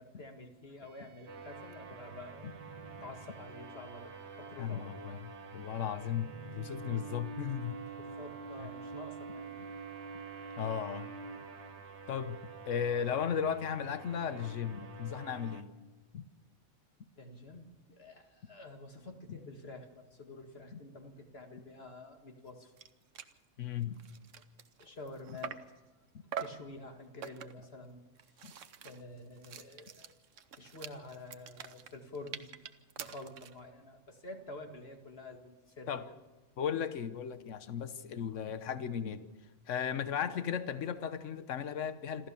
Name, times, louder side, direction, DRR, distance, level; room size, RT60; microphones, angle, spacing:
voice 1, 0.0-2.5 3.0-5.1 7.9-9.7 10.0-10.4 17.2-22.7 24.8-25.7 26.2-28.0 28.4-28.5 28.8-30.1 30.5-32.5 33.0-36.2 37.9-38.0 39.9-40.1, left 2 dB, 55° left, 5 dB, 2.2 m, -49 dB
sound 1, 0.8-11.9, right 5 dB, 35° right, 1.1 m, -50 dB
sound 2, 1.3-15.6, right 4 dB, 65° right, 1.6 m, -49 dB
voice 2, 4.6-7.8 10.6-11.1 12.1-12.4 12.6-15.7 16.1-16.3 19.3-19.4 23.6-24.0 28.4-28.5 35.9-36.0 36.6-39.3 39.7-42.3, left 8 dB, 80° left, 12 dB, 1.3 m, -36 dB
sound 3, 22.5-22.6 22.8-22.9 23.1-23.4 23.8-25.8 26.3-26.7 27.2-27.7 28.2-33.6, right 8 dB, 80° right, 1.3 m, -45 dB
27.0 x 13.5 x 7.0 m, 1.2 s
omnidirectional pair, 1.3 m